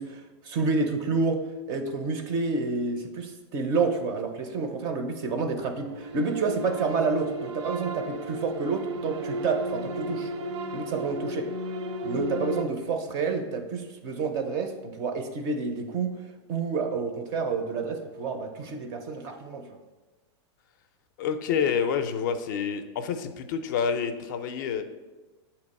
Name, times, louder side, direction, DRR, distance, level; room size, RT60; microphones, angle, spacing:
voice 1, 0.0-1.4 1.7-10.3 10.7-11.5 12.0-16.1 16.5-19.8, right 4 dB, 25° right, 6 dB, 0.4 m, -29 dB
sound 1, 5.6-12.6, equal, 75° right, 0.6 m, -34 dB
voice 2, 21.2-24.8, left 7 dB, 40° left, 9 dB, 0.4 m, -28 dB
6.8 x 2.9 x 5.3 m, 1.2 s
supercardioid pair, 175°, 15 cm